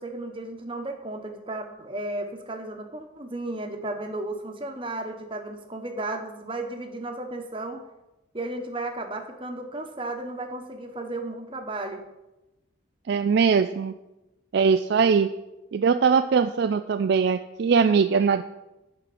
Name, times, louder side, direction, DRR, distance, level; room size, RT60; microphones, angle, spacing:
voice 1, 0.0-7.8 8.3-12.0, right 2 dB, 25° right, 5 dB, 1.1 m, -34 dB
voice 2, 13.1-13.9 14.5-15.3 15.7-18.4, right 6 dB, 55° right, 9 dB, 0.3 m, -21 dB
11.0 x 4.4 x 7.8 m, 0.98 s
head